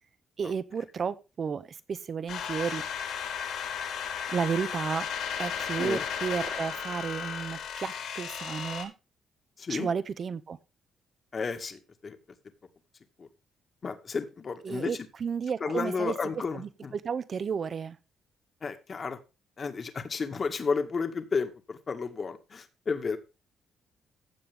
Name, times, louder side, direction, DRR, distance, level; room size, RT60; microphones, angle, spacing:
voice 1, 0.4-2.8 4.3-8.9 9.7-10.6 14.6-16.1 16.5-18.0, right 6 dB, 45° right, 1.3 m, -32 dB
sound 1, 2.3-8.8, left 7 dB, 75° left, 4.8 m, -34 dB
voice 2, 9.6-9.9 11.3-12.2 13.2-13.3 13.8-15.0 15.6-16.9 18.6-19.2 19.6-23.2, left 5 dB, 40° left, 2.1 m, -32 dB
15.5 x 7.3 x 3.6 m
cardioid pair, 90°, 0 cm